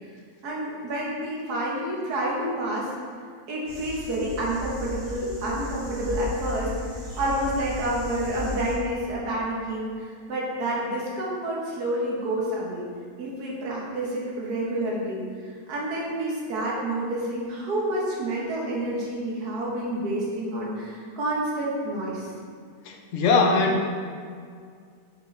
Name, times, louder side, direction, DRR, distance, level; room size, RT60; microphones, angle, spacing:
voice 1, 0.4-2.9 3.5-6.7 7.2-12.8 13.2-15.2 15.7-22.3, right 1 dB, 65° right, -4 dB, 1.8 m, -29 dB
sound 1, 3.7-8.8, left 2 dB, 85° right, 2.7 m, -36 dB
voice 2, 22.9-23.8, left 3 dB, 55° left, 2 dB, 0.8 m, -21 dB
7.7 x 5.2 x 3.4 m, 2.1 s
omnidirectional pair, 1.9 m